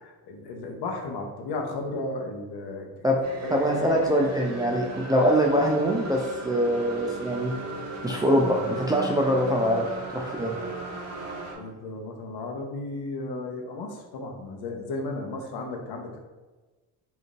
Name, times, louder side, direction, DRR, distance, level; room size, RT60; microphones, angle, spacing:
voice 1, 0.0-3.0 3.4-4.0 11.6-16.2, left 2 dB, 60° left, 3 dB, 0.7 m, -34 dB
sound 1, 3.2-11.6, right 3 dB, 35° right, 0.8 m, -37 dB
voice 2, 3.5-7.5 8.0-10.6, equal, 10° right, -1 dB, 0.3 m, -23 dB
3.6 x 2.6 x 2.4 m, 1.3 s
hypercardioid pair, 60°, 45 cm